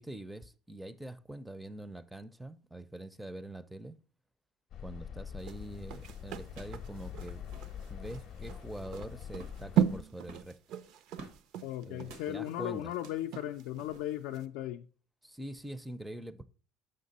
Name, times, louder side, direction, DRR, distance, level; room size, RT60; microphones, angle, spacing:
voice 1, 0.0-4.0 4.8-7.4 7.9-10.6 11.8-12.9 15.2-16.4, right 1 dB, 5° right, 0.4 m, -44 dB
sound 1, 4.7-10.0, left 8 dB, 45° left, 0.7 m, -44 dB
sound 2, 5.4-13.9 14.3-14.5, right 10 dB, 65° right, 0.5 m, -36 dB
sound 3, 5.7-5.8 6.5-6.9 7.1-7.2 7.4-7.8 8.3-8.7 9.3-9.7 10.2-11.4 12.0-12.3 12.9-13.3 13.8-14.0, right 3 dB, 90° right, 1.2 m, -51 dB
voice 2, 11.6-14.8, left 13 dB, 85° left, 0.4 m, -37 dB
6.6 x 6.0 x 4.0 m
cardioid pair, 145°, 0 cm